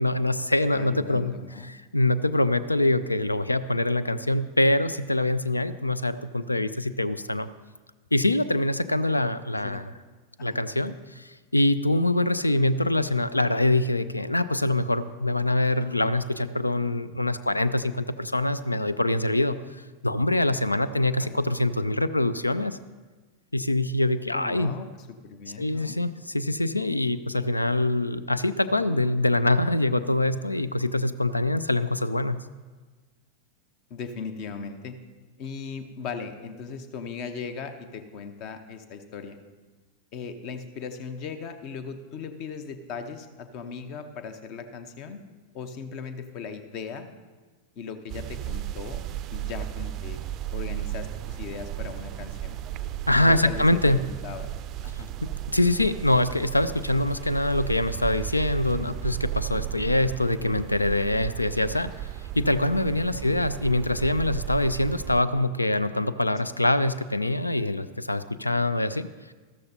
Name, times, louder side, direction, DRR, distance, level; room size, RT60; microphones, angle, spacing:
voice 1, 0.0-1.3 1.9-7.5 8.1-9.8 10.4-22.8 23.5-24.7 25.6-32.4 53.1-54.0 55.5-61.9 62.3-69.1, left 1 dB, 85° left, 15 dB, 0.3 m, -24 dB
voice 2, 0.7-1.7 9.6-9.9 10.4-10.6 15.6-15.9 21.2-21.4 24.3-24.9 25.2-26.0 33.9-35.0 35.4-39.4 40.1-45.2 45.5-47.1 47.8-49.0 49.3-50.2 50.5-52.6 53.3-54.5 54.8-55.1 60.0-60.2 63.1-63.4, left 5 dB, 40° left, 9 dB, 0.9 m, -38 dB
sound 1, 48.1-65.2, right 12 dB, 35° right, 0.4 m, -35 dB
13.5 x 13.0 x 2.8 m, 1.4 s
figure-of-eight pair, 90°, 0 cm